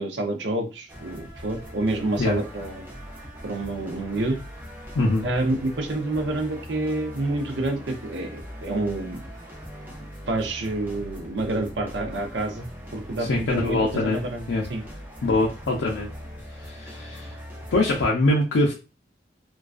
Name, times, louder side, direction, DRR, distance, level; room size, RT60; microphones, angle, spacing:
voice 1, 0.0-2.9 3.4-4.4 5.2-9.2 10.3-14.4 14.7-14.8, right 2 dB, 70° right, 4 dB, 0.5 m, -28 dB
sound 1, 0.9-18.1, equal, 10° right, 0.5 m, -41 dB
voice 2, 5.0-5.3 13.2-14.2 14.5-14.6 15.2-16.1 16.6-17.3 17.7-18.7, left 2 dB, 90° left, -2 dB, 0.4 m, -23 dB
2.3 x 2.3 x 2.3 m, 0.31 s
head